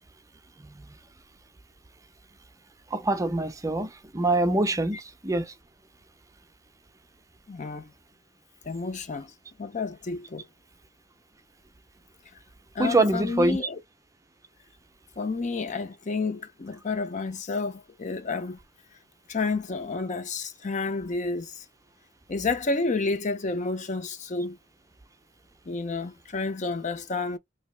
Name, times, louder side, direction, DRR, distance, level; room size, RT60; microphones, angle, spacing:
voice 1, 2.9-5.5 12.8-13.6, right 2 dB, 15° right, 0.5 m, -24 dB
voice 2, 7.5-7.9 8.6-9.3 9.6-10.4 12.7-13.8 15.2-18.6 19.3-21.6 22.3-24.6 25.7-27.4, left 3 dB, 40° left, 0.6 m, -30 dB
2.9 x 2.8 x 3.2 m
head